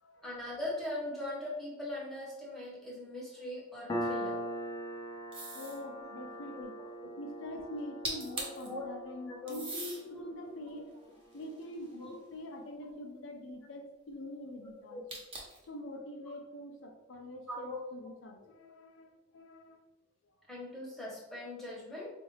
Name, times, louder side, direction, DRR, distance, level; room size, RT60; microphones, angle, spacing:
voice 1, 0.2-4.4 6.5-6.7 7.0-7.1 8.7-8.9 9.3-9.7 10.1-10.5 12.0-12.2 14.9-15.0 17.5-17.8 20.5-22.1, left 1 dB, ahead, -5 dB, 1.0 m, -40 dB
Piano, 3.9-11.1, equal, 20° left, 0.4 m, -41 dB
sound 1, 5.3-5.8 7.8-7.9 8.0-8.7 9.5-10.0 10.7-12.1 15.1-15.7, right 2 dB, 30° right, 0.9 m, -41 dB
voice 2, 5.5-6.8 7.2-15.0 15.7-19.8, left 1 dB, 90° left, 4 dB, 0.5 m, -45 dB
4.1 x 2.4 x 3.2 m, 1.0 s
head